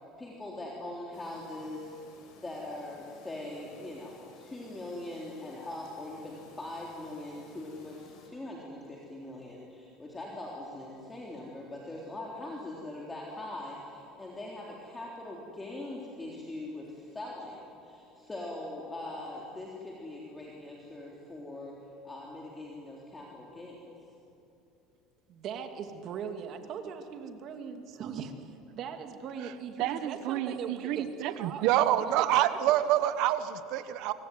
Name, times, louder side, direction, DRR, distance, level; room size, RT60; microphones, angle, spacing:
voice 1, 0.2-2.0 2.4-21.7 22.0-23.9, left 1 dB, 10° left, -3 dB, 3.6 m, -41 dB
Chirp tweet, 1.1-8.3, left 3 dB, 60° left, 6.3 m, -57 dB
voice 2, 25.3-32.1 32.4-32.9, right 6 dB, 45° right, 6 dB, 2.6 m, -40 dB
voice 3, 29.8-34.1, right 12 dB, 65° right, 12 dB, 1.2 m, -27 dB
25.0 x 23.5 x 9.6 m, 2.9 s
cardioid pair, 150°, 0 cm